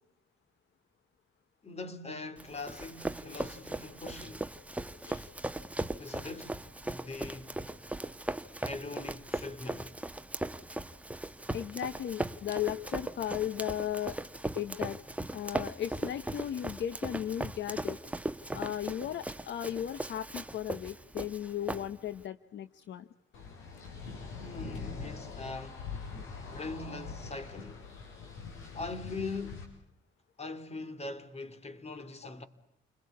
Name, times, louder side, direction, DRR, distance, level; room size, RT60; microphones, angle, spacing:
voice 1, 1.6-4.5 6.0-7.6 8.6-10.0 24.4-25.9 26.5-27.9 28.7-29.8 30.4-32.5, left 3 dB, 30° left, 3.0 m, -42 dB
Run, 2.4-22.2, right 1 dB, 5° right, 1.1 m, -38 dB
voice 2, 11.5-14.2 14.5-15.0 15.3-18.0 18.5-23.1, left 11 dB, 65° left, 1.0 m, -36 dB
sound 1, 23.3-29.6, left 5 dB, 85° left, 6.3 m, -43 dB
30.0 x 21.5 x 8.3 m
cardioid pair, 90°, 20 cm